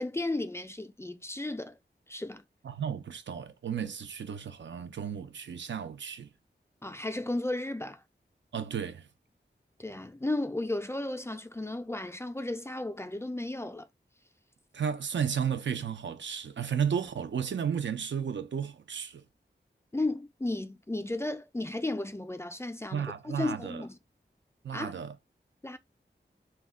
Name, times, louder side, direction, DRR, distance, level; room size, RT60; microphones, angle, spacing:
voice 1, 0.0-1.8 2.1-2.4 6.8-8.0 9.8-13.9 19.9-24.0 24.7-24.9 25.6-25.8, left 2 dB, 15° left, 0.3 m, -34 dB
voice 2, 2.6-6.3 8.5-9.1 14.7-19.2 22.9-23.8 24.6-25.1, right 7 dB, 75° right, 0.4 m, -33 dB
2.2 x 2.0 x 3.5 m
wide cardioid pair, 50°, 19 cm